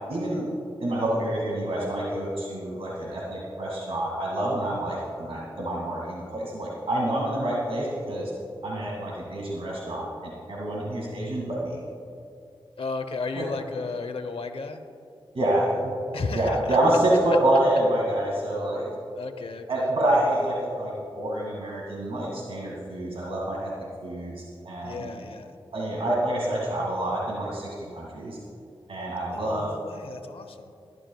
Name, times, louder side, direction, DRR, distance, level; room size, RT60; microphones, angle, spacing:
voice 1, 0.1-0.5 0.8-8.3 8.6-11.8 13.4-13.5 15.3-15.9 16.3-18.9 19.7-23.7 24.0-24.3 24.6-25.1 25.7-28.4 28.9-29.7, right 1 dB, 80° right, -4 dB, 2.1 m, -27 dB
voice 2, 12.8-14.8 16.1-16.8 19.1-19.9 24.8-25.6 29.3-30.7, left 4 dB, 80° left, 8 dB, 0.9 m, -34 dB
21.0 x 12.5 x 2.3 m, 2.5 s
wide cardioid pair, 65°, 9 cm